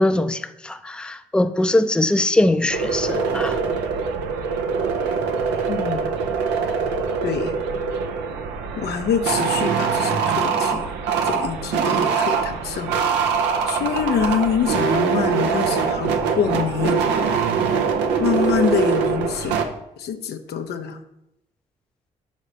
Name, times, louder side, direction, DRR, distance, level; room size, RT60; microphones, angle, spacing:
voice 1, 0.0-3.6, left 1 dB, 5° left, 0.5 m, -21 dB
sound 1, 2.7-19.7, right 6 dB, 85° right, 0.6 m, -23 dB
voice 2, 5.7-6.0 7.2-7.5 8.8-10.9 11.2-12.9 13.7-17.3 18.2-19.6 20.0-21.0, left 7 dB, 75° left, 0.6 m, -25 dB
5.2 x 5.0 x 5.5 m
supercardioid pair, 50°, 17 cm